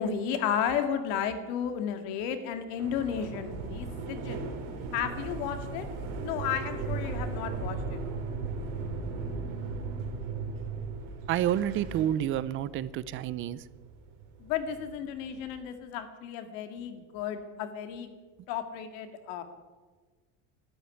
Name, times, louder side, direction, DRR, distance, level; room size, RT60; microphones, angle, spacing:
voice 1, 0.0-4.4 4.9-5.9 6.2-8.0 14.4-18.1 18.5-19.4, left 8 dB, 75° left, 8 dB, 2.2 m, -33 dB
sound 1, 2.8-15.6, right 4 dB, 75° right, 3.5 m, -37 dB
voice 2, 11.3-13.6, right 11 dB, 35° right, 18 dB, 0.6 m, -29 dB
12.5 x 11.0 x 9.6 m, 1.4 s
cardioid pair, 160°, 33 cm